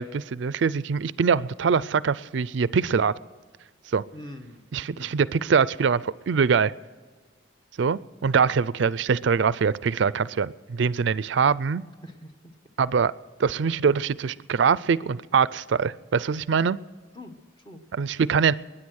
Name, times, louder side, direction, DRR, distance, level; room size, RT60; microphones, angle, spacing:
voice 1, 0.0-3.1 3.9-4.0 4.7-6.7 7.8-11.8 12.8-13.1 13.4-16.8 17.9-18.5, right 6 dB, 70° right, 18 dB, 0.4 m, -23 dB
voice 2, 4.1-5.2 12.0-12.3 17.1-17.8, left 1 dB, 25° left, 6 dB, 1.2 m, -44 dB
21.5 x 10.0 x 6.3 m, 1.4 s
head